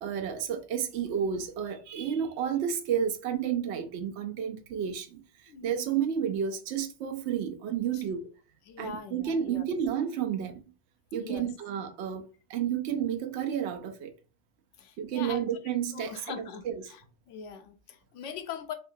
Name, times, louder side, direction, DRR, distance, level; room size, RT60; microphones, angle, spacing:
voice 1, 0.0-5.2 5.6-8.2 8.8-10.6 11.1-12.2 12.5-14.1 15.0-16.8, right 8 dB, 70° right, 0.9 m, -31 dB
voice 2, 8.7-9.7 11.2-11.5 14.8-15.4 15.9-17.0 17.3-18.7, left 7 dB, 80° left, 0.9 m, -41 dB
3.5 x 2.4 x 2.6 m
omnidirectional pair, 1.2 m